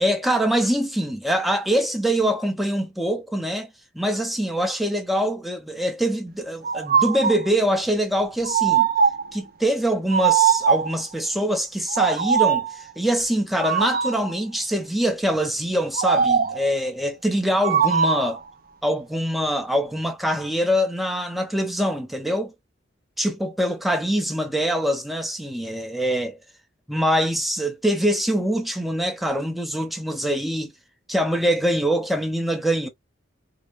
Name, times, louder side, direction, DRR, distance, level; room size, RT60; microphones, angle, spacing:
voice 1, 0.0-3.7 3.9-8.9 9.3-18.4 18.8-22.5 23.2-26.4 26.9-30.7 31.1-32.9, equal, ahead, 0.6 m, -24 dB
sound 1, 6.6-7.5 8.4-9.4 10.1-11.0 11.9-12.7 13.6-14.3 15.9-16.7 17.6-18.4, right 7 dB, 50° right, 0.5 m, -21 dB
4.8 x 2.0 x 2.5 m
head